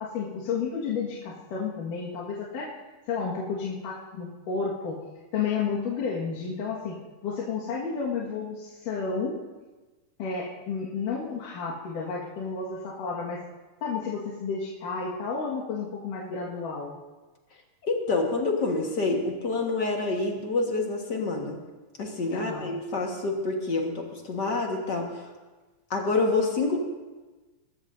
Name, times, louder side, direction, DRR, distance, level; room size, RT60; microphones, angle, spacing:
voice 1, 0.0-2.7 3.1-5.0 5.3-7.0 7.2-9.4 10.2-13.4 13.8-17.0 22.3-22.7, left 5 dB, 85° left, -6 dB, 3.2 m, -31 dB
voice 2, 17.8-21.6 22.0-25.3 25.9-26.8, left 3 dB, 45° left, 1 dB, 1.5 m, -27 dB
22.5 x 13.5 x 2.7 m, 1.2 s
omnidirectional pair, 3.6 m